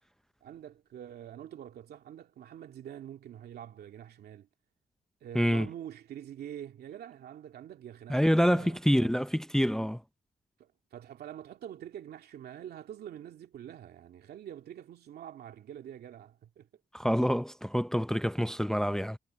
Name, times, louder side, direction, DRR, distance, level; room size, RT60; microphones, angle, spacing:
voice 1, 0.4-4.5 5.2-9.2 10.6-16.7, right 10 dB, 85° right, 2.3 m, -46 dB
voice 2, 5.3-5.7 8.1-10.0 16.9-19.2, equal, 5° left, 0.6 m, -27 dB
cardioid pair, 70°, 16 cm